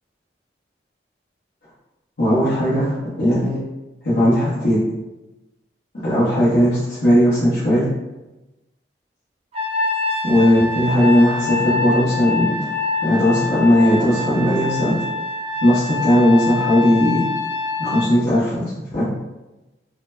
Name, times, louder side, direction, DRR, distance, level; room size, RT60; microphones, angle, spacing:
voice 1, 2.2-3.6 4.0-4.8 5.9-7.9 10.2-12.6 13.0-15.1 15.6-17.3 17.8-18.6 18.9-19.1, equal, 80° left, -12 dB, 1.1 m, -17 dB
Trumpet, 9.5-18.1, left 4 dB, 35° right, 0.5 m, -25 dB
4.1 x 2.1 x 2.7 m, 1.0 s
head